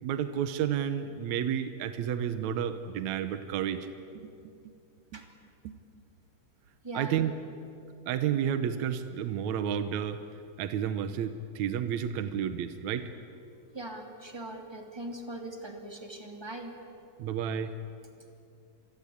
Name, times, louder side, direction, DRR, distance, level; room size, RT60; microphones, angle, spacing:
voice 1, 0.0-3.9 4.2-4.5 5.6-5.7 6.9-7.3 8.1-10.2 10.6-13.1 17.2-17.7, right 9 dB, 75° right, 9 dB, 2.3 m, -31 dB
voice 2, 6.8-7.4 13.7-16.7, right 1 dB, 10° right, 2 dB, 2.5 m, -41 dB
27.5 x 23.5 x 8.6 m, 2.5 s
omnidirectional pair, 3.4 m